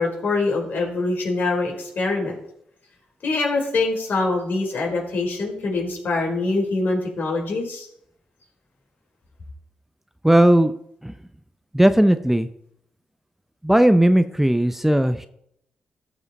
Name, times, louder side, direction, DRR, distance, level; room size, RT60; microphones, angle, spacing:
voice 1, 0.0-2.3 3.2-7.9, left 3 dB, 60° left, -1 dB, 4.1 m, -24 dB
voice 2, 10.2-10.7 11.0-11.1 11.7-12.5 13.6-15.3, right 1 dB, 5° right, 11 dB, 0.6 m, -17 dB
13.5 x 5.0 x 4.1 m, 0.73 s
supercardioid pair, 45°, 4 cm